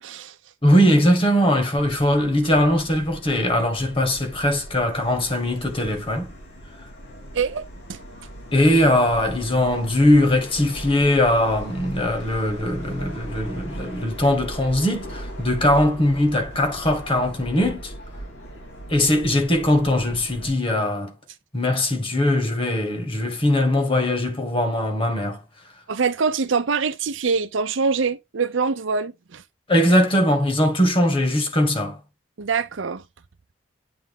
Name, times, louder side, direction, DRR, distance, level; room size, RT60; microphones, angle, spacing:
voice 1, 0.0-0.4 7.3-8.0 25.9-29.4 32.4-33.0, right 5 dB, 75° right, 0.6 m, -24 dB
voice 2, 0.6-6.3 8.5-17.9 18.9-21.1 21.5-25.4 29.7-32.0, left 1 dB, 25° left, 1.5 m, -20 dB
Subway metro underground, 1.8-20.5, equal, 75° left, 4.1 m, -38 dB
8.7 x 3.5 x 3.6 m
head